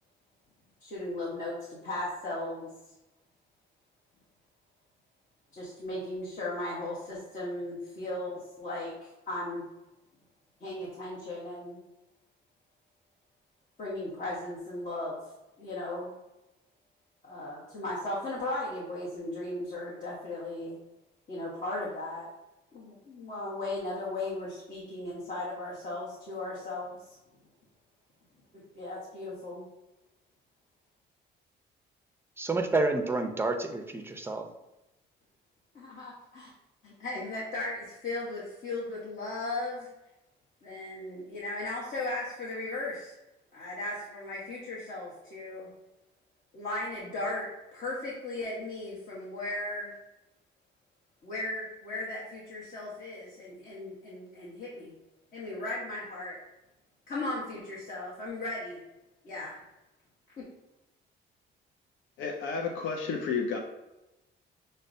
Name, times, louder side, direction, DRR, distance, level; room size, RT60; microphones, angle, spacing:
voice 1, 0.8-2.7 5.5-8.9 9.3-9.7 10.6-11.8 13.8-15.2 15.6-16.1 17.2-20.8 21.3-22.3 22.7-27.2 28.5-29.7 35.7-36.5 36.8-39.9 40.6-43.1 43.5-45.7 46.5-49.9 51.2-54.9 55.3-56.4 57.1-58.8 59.2-59.6 60.4-60.5, left 2 dB, 40° left, -7 dB, 1.1 m, -36 dB
voice 2, 32.4-34.5, right 3 dB, 10° right, 6 dB, 0.5 m, -29 dB
voice 3, 62.2-63.6, left 5 dB, 75° left, 1 dB, 0.5 m, -31 dB
6.4 x 2.1 x 2.6 m, 0.98 s
cardioid pair, 90°, 20 cm